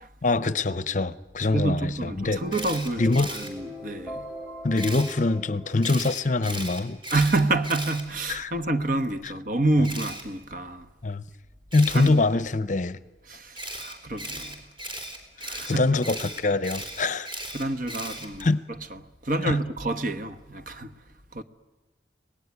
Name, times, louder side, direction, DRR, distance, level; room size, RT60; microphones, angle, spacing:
voice 1, 0.2-2.4 3.0-3.3 4.6-7.0 8.3-8.5 11.0-11.2 11.7-13.0 15.7-17.3 18.4-18.6 19.4-19.6, left 3 dB, 40° left, 0.7 m, -24 dB
voice 2, 1.5-4.3 7.1-10.9 11.9-12.2 13.3-14.6 15.4-15.9 17.5-18.5 18.9-20.9 21.3-21.4, right 2 dB, 45° right, 1.2 m, -28 dB
sound 1, 2.1-6.4, right 1 dB, 5° right, 2.4 m, -42 dB
Camera, 2.5-3.5 4.8-5.1 5.8-8.6 9.8-10.2 11.7-12.1 13.5-18.5, right 1 dB, 25° right, 3.7 m, -37 dB
25.0 x 19.0 x 9.7 m
head